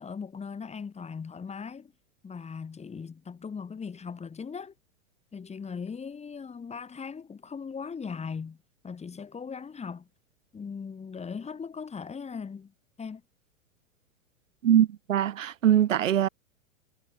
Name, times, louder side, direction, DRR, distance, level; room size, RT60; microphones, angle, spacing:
voice 1, 0.0-1.9 2.2-4.7 5.3-8.6 8.8-10.1 10.5-12.7 13.0-13.2, left 6 dB, 15° left, 6.8 m, -39 dB
voice 2, 14.6-16.3, right 10 dB, 80° right, 1.1 m, -22 dB
hypercardioid pair, 105°, 38 cm